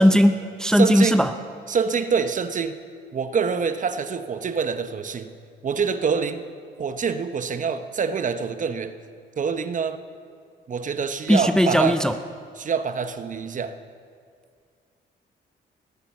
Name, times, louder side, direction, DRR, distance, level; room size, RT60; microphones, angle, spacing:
voice 1, 0.0-1.3 11.3-12.2, equal, 5° left, 9 dB, 0.5 m, -18 dB
voice 2, 0.7-1.2 1.7-2.8 3.1-5.3 5.6-6.4 6.8-8.9 9.4-10.0 10.7-12.0 12.6-13.7, right 6 dB, 40° right, 11 dB, 0.8 m, -25 dB
18.5 x 8.7 x 6.0 m, 2.2 s
cardioid pair, 90°, 20 cm